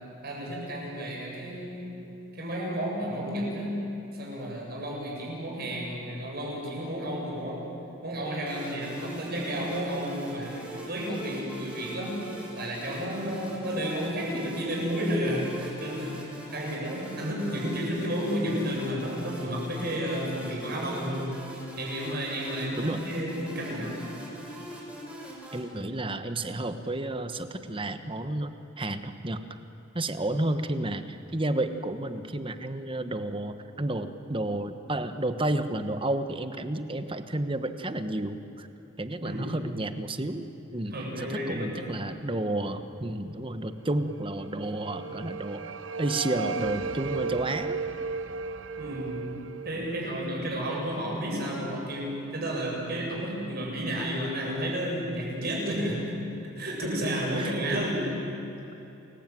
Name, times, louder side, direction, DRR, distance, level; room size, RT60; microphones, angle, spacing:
voice 1, 0.2-1.9 2.3-3.8 4.1-7.7 8.0-12.2 12.6-16.2 16.5-21.3 21.8-24.0 39.2-39.6 40.9-41.8 48.8-49.3 49.6-56.1 56.6-58.1, equal, 50° right, -2 dB, 7.9 m, -32 dB
sound 1, 8.5-25.6, equal, 10° right, 8.0 m, -43 dB
voice 2, 25.5-29.4 29.9-38.7 39.0-45.6 46.0-47.8 57.4-57.9, right 1 dB, 25° right, 9 dB, 1.3 m, -31 dB
sound 2, 44.3-51.4, right 5 dB, 65° right, 0.8 m, -36 dB
29.5 x 21.5 x 9.3 m, 3.0 s
head